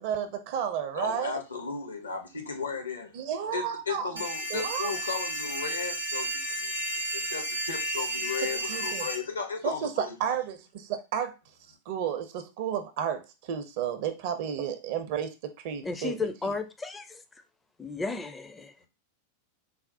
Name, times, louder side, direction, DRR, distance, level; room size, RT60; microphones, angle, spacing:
voice 1, 0.0-1.4 3.1-4.1 4.5-4.9 8.4-9.1 9.6-11.3 11.9-16.5, right 9 dB, 50° right, 0.5 m, -32 dB
voice 2, 0.9-3.1 3.5-6.8 7.1-10.4, left 5 dB, 75° left, 0.7 m, -35 dB
sound 1, 4.2-9.2, right 1 dB, 85° right, 0.7 m, -32 dB
voice 3, 15.8-17.2 17.8-18.8, left 4 dB, 15° left, 0.4 m, -34 dB
4.0 x 2.0 x 2.6 m
figure-of-eight pair, 90°, 0 cm